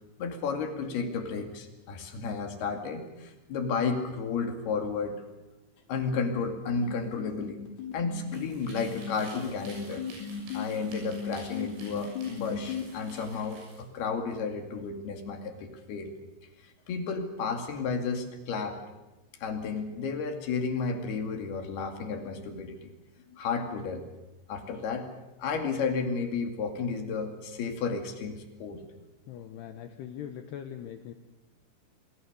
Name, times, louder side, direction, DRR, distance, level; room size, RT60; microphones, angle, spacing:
voice 1, 0.2-5.2 5.9-7.6 7.9-10.0 10.5-16.2 16.6-18.8 19.4-22.9 23.3-24.1 24.5-25.1 25.4-28.8, left 5 dB, 60° left, 5 dB, 3.9 m, -32 dB
sound 1, 6.8-12.8, left 8 dB, 40° left, 6.1 m, -36 dB
sound 2, 8.2-13.8, right 2 dB, 70° right, 9.4 m, -51 dB
voice 2, 29.3-31.1, left 9 dB, 75° left, 8 dB, 2.6 m, -41 dB
28.0 x 20.5 x 7.0 m, 1.1 s
omnidirectional pair, 5.8 m